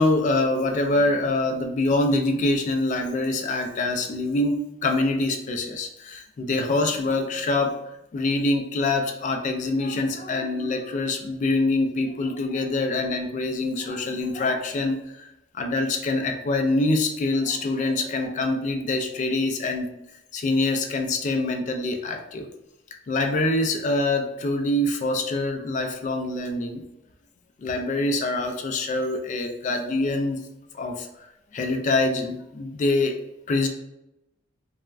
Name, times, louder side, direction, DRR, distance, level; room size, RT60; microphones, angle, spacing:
voice 1, 0.0-7.8 8.1-15.3 15.5-19.9 20.3-22.5 23.1-26.8 27.6-30.4 30.7-33.2 33.5-33.7, left 2 dB, 40° left, 5 dB, 0.3 m, -25 dB
3.3 x 2.1 x 2.3 m, 0.89 s
head